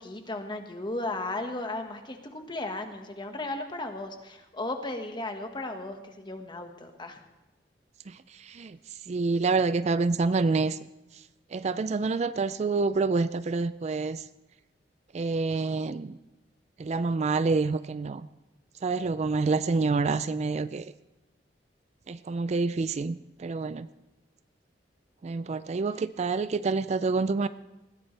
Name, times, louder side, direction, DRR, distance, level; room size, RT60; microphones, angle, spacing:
voice 1, 0.0-7.2, left 2 dB, 25° left, 5 dB, 1.5 m, -35 dB
voice 2, 8.1-8.8 9.1-10.8 11.1-11.2 11.5-14.3 15.1-16.2 16.8-18.3 18.8-20.9 22.1-23.9 25.2-27.5, right 4 dB, 40° right, 14 dB, 0.4 m, -27 dB
20.0 x 15.0 x 3.3 m, 1.0 s
head